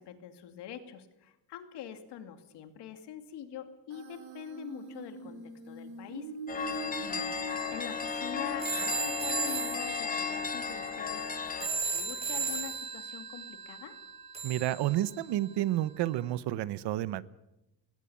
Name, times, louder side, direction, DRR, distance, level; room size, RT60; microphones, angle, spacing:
voice 1, 0.0-5.4 5.7-6.3 7.0-7.3 7.7-11.3 11.6-14.0, left 9 dB, 75° left, 7 dB, 2.5 m, -44 dB
Human voice, 3.9-8.9, right 4 dB, 60° right, 6.1 m, -44 dB
sound 1, 6.5-11.7, left 5 dB, 20° left, 1.3 m, -34 dB
sound 2, 7.5-15.6, right 4 dB, 15° right, 3.5 m, -37 dB
voice 2, 14.4-17.2, right 14 dB, 80° right, 17 dB, 1.0 m, -30 dB
19.5 x 18.0 x 8.7 m, 0.95 s
cardioid pair, 175°, 41 cm